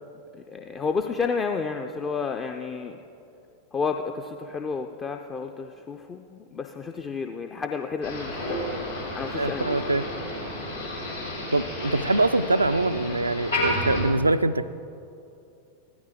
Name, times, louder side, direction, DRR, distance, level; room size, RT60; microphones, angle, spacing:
voice 1, 0.3-3.0 3.7-8.8 9.1-9.7 11.9-12.0, left 5 dB, 20° left, 5 dB, 0.5 m, -31 dB
Motor vehicle (road), 8.0-14.0, left 1 dB, 80° left, 3.6 m, -31 dB
voice 2, 9.3-10.1 11.5-14.7, right 2 dB, 80° right, 12 dB, 0.3 m, -24 dB
15.5 x 12.5 x 3.6 m, 2.6 s
figure-of-eight pair, 90°, 0 cm